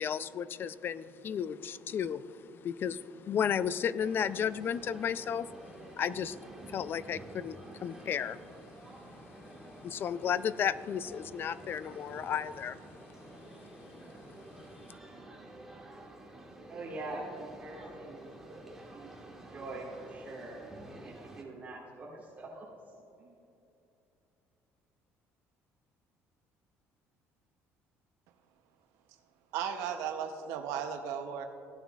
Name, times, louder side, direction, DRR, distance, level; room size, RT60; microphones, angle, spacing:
voice 1, 0.0-6.4 6.7-8.4 9.2-12.8 14.8-14.9, left 8 dB, 45° left, 16 dB, 0.3 m, -34 dB
sound 1, 4.0-21.4, right 2 dB, 5° right, 1.5 m, -50 dB
voice 2, 16.7-18.6 18.9-20.6 21.0-22.6 23.2-23.3, right 2 dB, 35° right, -5 dB, 1.7 m, -44 dB
voice 3, 29.5-31.4, right 8 dB, 90° right, 6 dB, 0.6 m, -35 dB
16.5 x 9.2 x 2.4 m, 2.8 s
cardioid pair, 115°, 5 cm